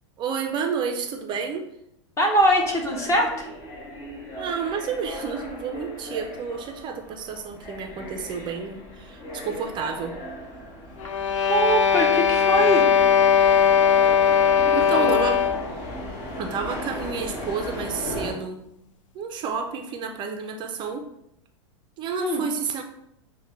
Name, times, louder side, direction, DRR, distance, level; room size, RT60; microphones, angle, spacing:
voice 1, 0.2-1.7 4.4-10.2 14.7-15.4 16.4-18.6 19.1-21.1 22.0-22.8, right 6 dB, 30° right, 4 dB, 0.4 m, -30 dB
voice 2, 2.2-3.5 11.5-12.9 14.6-15.2 22.2-22.4, right 1 dB, 20° left, 1 dB, 0.9 m, -22 dB
sound 1, 2.4-18.3, left 1 dB, 40° left, 1.2 m, -37 dB
sound 2, 11.0-15.7, left 7 dB, 90° left, 0.4 m, -19 dB
6.3 x 2.2 x 3.2 m, 0.81 s
hypercardioid pair, 125°, 16 cm